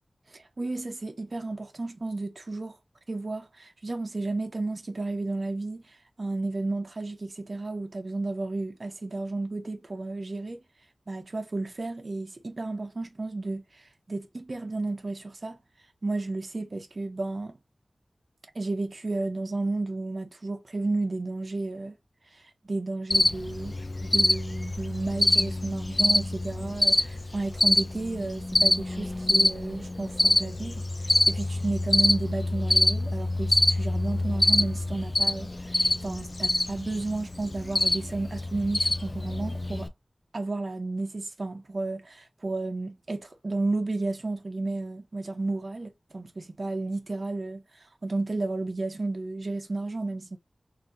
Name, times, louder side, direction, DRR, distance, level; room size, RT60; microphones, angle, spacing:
voice 1, 0.3-2.8 3.1-10.6 11.1-15.6 16.0-17.6 18.5-21.9 22.3-23.7 24.0-39.9 40.3-47.6 48.0-50.4, right 2 dB, 50° right, 1.1 m, -32 dB
Cricket, 23.1-39.9, left 2 dB, 35° left, 0.5 m, -25 dB
4.0 x 2.8 x 2.6 m
wide cardioid pair, 85°, 0 cm